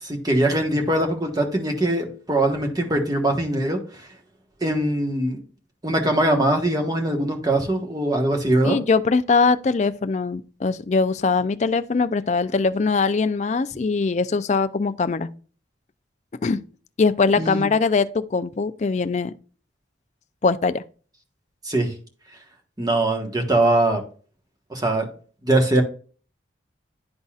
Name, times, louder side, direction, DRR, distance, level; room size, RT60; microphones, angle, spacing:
voice 1, 0.0-4.1 4.6-5.4 5.8-8.8 17.4-17.7 21.6-21.9 22.8-24.0 24.7-25.1 25.4-25.8, right 1 dB, 20° right, 1.2 m, -22 dB
voice 2, 8.6-15.3 16.4-16.7 17.0-19.3 20.4-20.8, left 4 dB, 40° left, 0.4 m, -21 dB
11.5 x 4.0 x 2.4 m
head